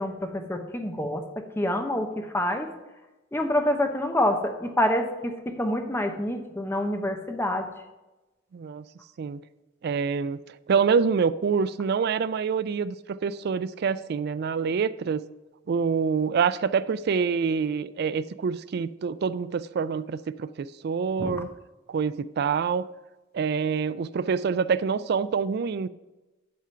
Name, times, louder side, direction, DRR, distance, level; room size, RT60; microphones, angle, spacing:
voice 1, 0.0-2.7 3.3-7.7 21.2-21.3, left 1 dB, 10° left, 0.8 m, -27 dB
voice 2, 8.5-8.9 9.2-9.4 9.8-15.2 15.7-21.5 21.9-22.9 23.3-25.9, right 6 dB, 55° right, 0.3 m, -26 dB
10.5 x 3.8 x 5.6 m
head